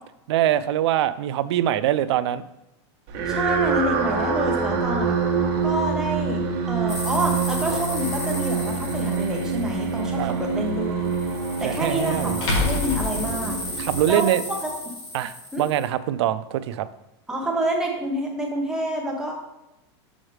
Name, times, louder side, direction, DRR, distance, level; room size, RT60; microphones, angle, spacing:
voice 1, 0.3-2.4 10.2-10.3 11.6-12.4 13.8-14.4 15.1-16.9, right 12 dB, 75° right, 13 dB, 0.4 m, -23 dB
sound 1, 3.1-14.5, right 5 dB, 40° right, 1.1 m, -26 dB
voice 2, 3.3-5.1 5.6-11.0 11.6-13.6 14.1-14.3 14.9-15.0 15.5-15.6 17.3-19.3, equal, 5° right, -1 dB, 0.9 m, -28 dB
sound 2, 6.9-10.5 11.0-15.9, left 2 dB, 45° left, 1.8 m, -35 dB
sound 3, 8.6-8.7 11.2-11.3 12.4-14.0, left 2 dB, 85° left, 2.5 m, -26 dB
6.3 x 6.2 x 3.2 m, 0.89 s
supercardioid pair, 165°, 14 cm